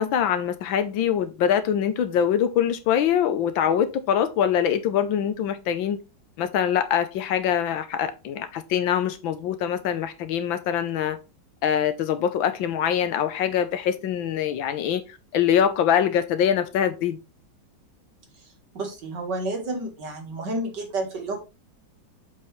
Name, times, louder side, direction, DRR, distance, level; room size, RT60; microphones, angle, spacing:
voice 1, 0.0-6.0 6.4-11.2 11.6-15.0 15.3-17.2, left 9 dB, 80° left, 1.6 m, -23 dB
voice 2, 18.7-21.4, right 2 dB, 60° right, 2.3 m, -30 dB
7.5 x 5.4 x 3.2 m
omnidirectional pair, 2.2 m